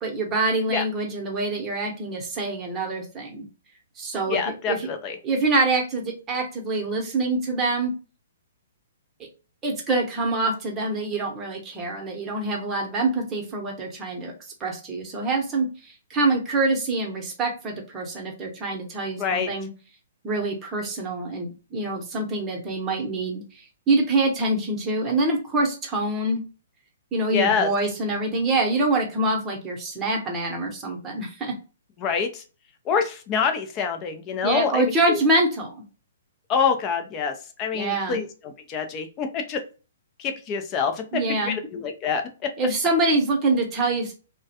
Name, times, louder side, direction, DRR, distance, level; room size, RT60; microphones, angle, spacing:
voice 1, 0.0-3.5 4.0-4.4 4.7-4.9 5.2-7.9 9.6-14.3 14.6-19.7 20.2-23.4 23.9-26.4 27.1-31.5 34.4-35.8 37.7-38.2 41.1-41.6 42.6-44.1, right 2 dB, 20° right, 0 dB, 0.9 m, -25 dB
voice 2, 4.3-5.2 19.2-19.5 27.3-27.7 32.0-32.4 32.9-35.2 36.5-37.3 37.6-39.6 40.2-42.5, left 6 dB, 25° left, 5 dB, 0.5 m, -26 dB
2.3 x 2.1 x 2.7 m, 0.34 s
hypercardioid pair, 140°, 0 cm